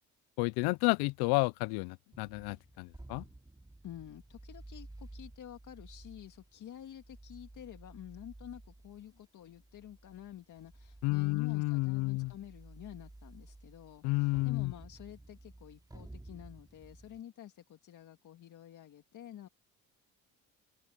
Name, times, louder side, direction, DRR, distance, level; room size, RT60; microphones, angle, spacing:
voice 1, 0.4-3.2 11.0-12.3 14.0-14.7, left 25 dB, 80° left, 0.6 m, -31 dB
sound 1, 2.1-17.2, right 2 dB, 10° right, 3.6 m, -53 dB
voice 2, 3.8-19.5, left 11 dB, 50° left, 1.9 m, -49 dB
supercardioid pair, 85°, 38 cm